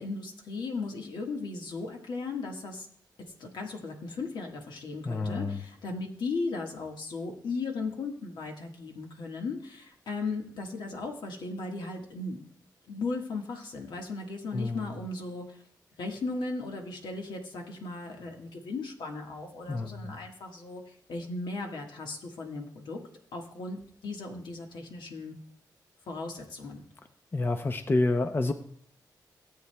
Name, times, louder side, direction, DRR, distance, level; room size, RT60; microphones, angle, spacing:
voice 1, 0.0-2.9 3.4-12.5 12.9-15.6 16.0-23.0 23.3-25.4 26.1-26.8, left 3 dB, 85° left, 2 dB, 1.5 m, -36 dB
voice 2, 5.1-5.6 14.5-14.9 19.7-20.2 27.3-28.5, left 2 dB, 30° left, 8 dB, 0.5 m, -28 dB
17.0 x 8.1 x 2.2 m, 0.63 s
cardioid pair, 95°, 8 cm